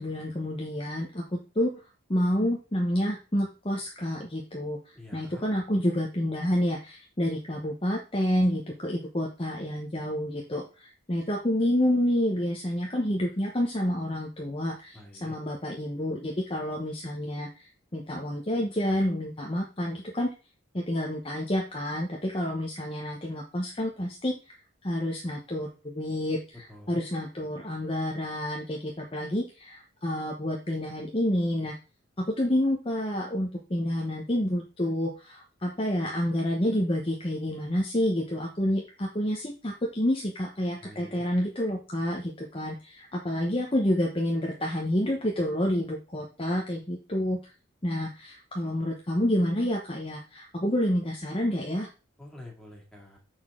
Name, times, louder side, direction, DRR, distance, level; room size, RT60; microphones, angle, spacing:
voice 1, 0.0-1.7 2.1-20.3 20.7-24.3 24.8-31.8 32.2-47.4 47.8-51.9, left 1 dB, 25° left, -1 dB, 0.9 m, -29 dB
voice 2, 4.9-5.4 14.9-15.4 26.7-27.0 40.8-41.2 52.2-53.2, left 1 dB, 5° left, -2 dB, 2.2 m, -47 dB
7.0 x 6.0 x 3.7 m, 0.32 s
head